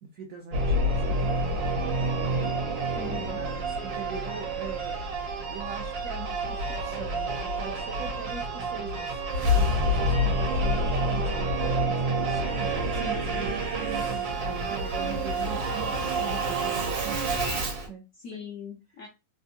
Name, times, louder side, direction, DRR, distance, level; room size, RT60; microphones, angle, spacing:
voice 1, 0.0-3.0 3.2-5.0 5.5-9.2 9.5-18.0 18.3-18.4, right 6 dB, 70° right, 1 dB, 0.8 m, -42 dB
Singing / Musical instrument, 0.5-17.9, right 1 dB, 90° right, 1.6 m, -28 dB
voice 2, 2.9-3.4 13.0-13.5 18.2-19.1, left 7 dB, 70° left, 1 dB, 0.8 m, -40 dB
3.4 x 2.5 x 2.6 m, 0.26 s
omnidirectional pair, 2.0 m